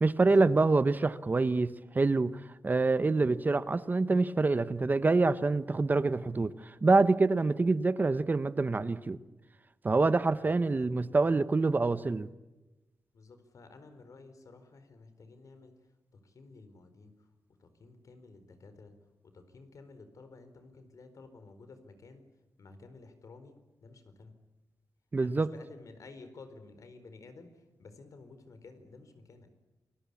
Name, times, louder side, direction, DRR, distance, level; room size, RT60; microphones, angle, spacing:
voice 1, 0.0-9.2 9.8-12.3 25.1-25.5, right 3 dB, 30° right, 1.0 m, -26 dB
voice 2, 10.4-10.9 13.1-15.7 16.1-17.1 17.6-18.9 19.2-22.2 22.6-23.5 23.8-24.3 25.2-27.5 27.8-29.5, left 3 dB, 70° left, 4.4 m, -52 dB
29.0 x 21.5 x 8.5 m
wide cardioid pair, 125°, 6 cm